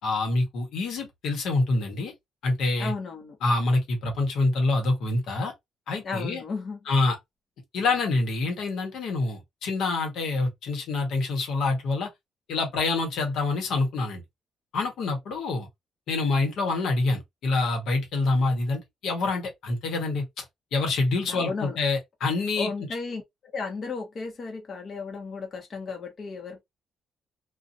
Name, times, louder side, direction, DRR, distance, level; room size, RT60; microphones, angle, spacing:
voice 1, 0.0-2.1 2.4-2.9 3.4-5.5 5.9-6.4 6.9-7.2 7.7-12.1 12.5-14.2 14.7-15.7 16.1-20.4 20.7-22.7, left 3 dB, 75° left, 1.3 m, -26 dB
voice 2, 2.8-3.4 6.0-6.9 21.3-21.8 22.6-26.6, left 4 dB, 50° left, 1.1 m, -34 dB
2.7 x 2.5 x 2.6 m
cardioid pair, 90°, 0 cm